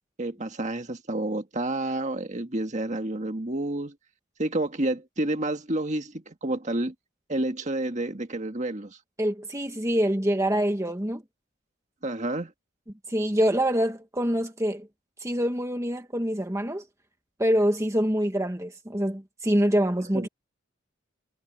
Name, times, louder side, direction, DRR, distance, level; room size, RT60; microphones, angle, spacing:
voice 1, 0.2-4.0 4.4-6.9 7.3-9.0 12.0-12.5 20.1-20.3, right 1 dB, 35° right, 1.7 m, -29 dB
voice 2, 9.2-11.2 13.1-14.9 15.2-16.8 17.4-20.3, equal, 15° right, 1.4 m, -25 dB
head